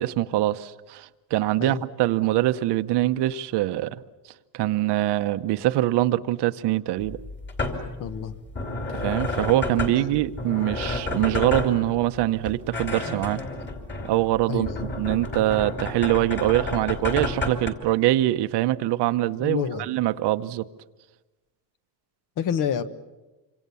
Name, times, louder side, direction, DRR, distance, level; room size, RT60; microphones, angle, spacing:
voice 1, 0.0-4.0 4.5-7.2 8.9-13.4 14.0-20.6, right 15 dB, 65° right, 12 dB, 0.9 m, -24 dB
sound 1, 7.0-17.7, left 2 dB, 25° left, 2.9 m, -31 dB
voice 2, 8.0-8.3 9.9-10.1 14.5-14.9 19.4-19.9 22.4-22.8, left 8 dB, 45° left, 12 dB, 1.2 m, -28 dB
26.5 x 25.5 x 7.0 m, 1.1 s
cardioid pair, 180°, 44 cm